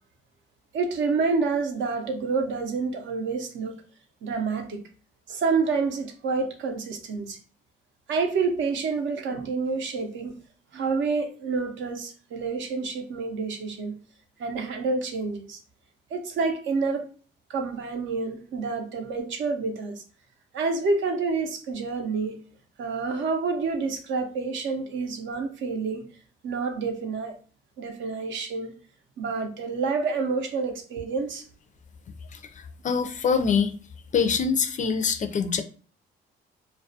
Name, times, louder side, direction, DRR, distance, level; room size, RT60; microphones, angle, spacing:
voice 1, 0.7-3.7 4.2-4.8 5.3-7.4 8.1-10.4 10.7-14.0 14.4-15.6 16.1-17.1 17.5-20.0 20.5-22.4 22.8-26.1 26.4-27.4 27.8-28.7 29.2-31.4, right 4 dB, 70° right, 5 dB, 0.6 m, -28 dB
voice 2, 32.3-33.8 34.1-35.6, left 6 dB, 40° left, 8 dB, 0.4 m, -25 dB
2.3 x 2.1 x 2.6 m, 0.39 s
cardioid pair, 90°, 20 cm